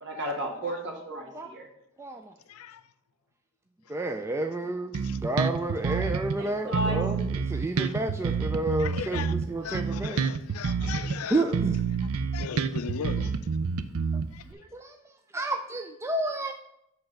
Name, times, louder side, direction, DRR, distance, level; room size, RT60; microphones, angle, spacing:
voice 1, 0.0-1.7 5.9-6.1 6.4-7.0, equal, 55° right, 1.6 m, -33 dB
voice 2, 2.0-2.3 3.9-10.2 11.3-11.8 14.1-14.2 14.5-16.5, right 2 dB, 10° right, 0.3 m, -31 dB
voice 3, 2.5-2.9 3.9-4.0 4.9-5.2 7.8-7.9 8.8-11.4 12.3-13.3 14.3-14.5, left 7 dB, 80° left, 0.4 m, -38 dB
Bass guitar, 4.9-6.4 6.7-11.2 11.5-14.5, right 5 dB, 85° right, 0.5 m, -28 dB
8.0 x 3.4 x 6.5 m
head